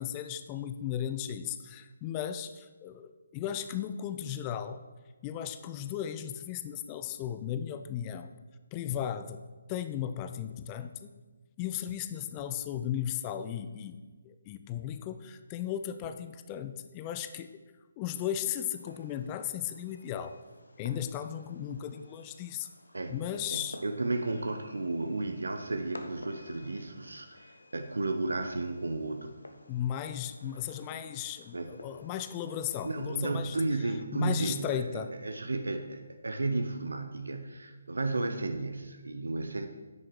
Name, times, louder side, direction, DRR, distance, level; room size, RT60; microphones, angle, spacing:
voice 1, 0.0-4.8 5.2-8.3 8.7-9.4 9.7-11.1 11.6-17.6 18.0-20.4 20.8-22.7 23.1-23.8 29.7-33.6 34.1-35.1, left 10 dB, 20° left, 10 dB, 0.5 m, -36 dB
Fireworks, 18.0-33.2, left 1 dB, 75° left, 1.2 m, -53 dB
voice 2, 23.5-29.3 31.5-31.7 32.8-39.7, right 2 dB, 70° right, 7 dB, 0.8 m, -33 dB
9.4 x 6.6 x 6.1 m, 1.3 s
figure-of-eight pair, 145°, 0 cm